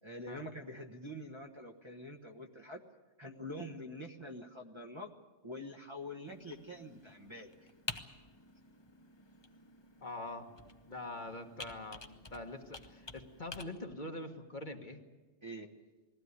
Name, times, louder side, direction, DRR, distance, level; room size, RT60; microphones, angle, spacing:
voice 1, 0.0-2.8 3.2-5.1 5.4-7.5 15.4-15.7, left 1 dB, 25° right, 3 dB, 1.3 m, -45 dB
Computer keyboard, 6.3-13.6, left 3 dB, 25° left, 0.9 m, -50 dB
voice 2, 10.0-10.5 10.8-15.0, left 2 dB, 40° left, 4 dB, 1.6 m, -44 dB
21.0 x 16.0 x 9.6 m, 1.3 s
omnidirectional pair, 1.2 m